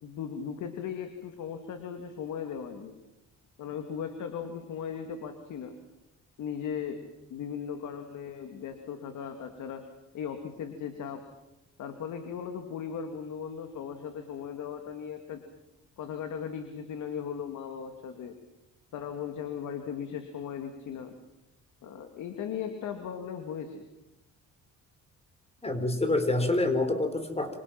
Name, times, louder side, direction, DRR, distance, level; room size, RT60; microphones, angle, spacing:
voice 1, 0.0-3.0 3.6-5.8 6.4-9.8 10.1-11.2 11.8-15.4 16.0-18.4 18.9-21.2 21.8-23.9, left 7 dB, 80° left, 6 dB, 2.5 m, -37 dB
voice 2, 25.6-27.6, left 2 dB, 20° left, 8 dB, 4.1 m, -27 dB
26.5 x 26.5 x 5.9 m, 0.93 s
cardioid pair, 90°, 30 cm